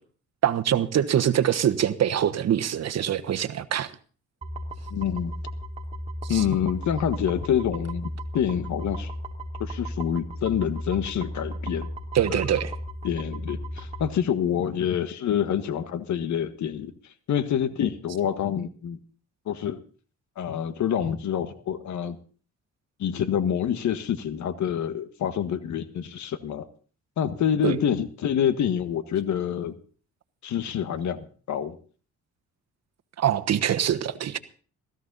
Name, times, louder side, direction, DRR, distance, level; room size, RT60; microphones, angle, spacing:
voice 1, 0.4-3.9 6.2-6.4 12.1-12.7 27.6-27.8 33.2-34.4, right 10 dB, 60° right, 1.3 m, -24 dB
sound 1, 4.4-14.1, equal, 20° right, 3.1 m, -35 dB
voice 2, 4.9-5.3 6.3-8.1 8.3-9.1 9.6-11.9 12.3-12.4 13.0-16.9 17.3-19.0 19.4-19.8 20.4-22.2 23.0-26.7 27.2-29.7 30.4-31.8, left 9 dB, 70° left, 1.6 m, -27 dB
16.5 x 15.0 x 4.1 m
cardioid pair, 90°, 30 cm